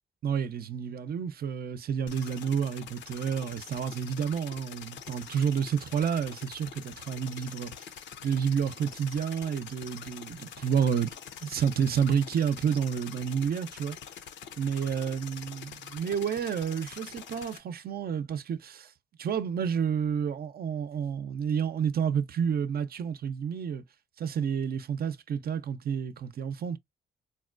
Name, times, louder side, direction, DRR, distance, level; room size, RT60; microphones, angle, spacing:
voice 1, 0.2-7.7 8.2-11.1 11.4-14.0 14.6-18.9 19.2-23.8 24.2-26.8, right 7 dB, 55° right, 0.6 m, -30 dB
sound 1, 2.1-17.6, left 9 dB, 80° left, 0.6 m, -45 dB
4.1 x 2.2 x 2.4 m
cardioid pair, 70°, 19 cm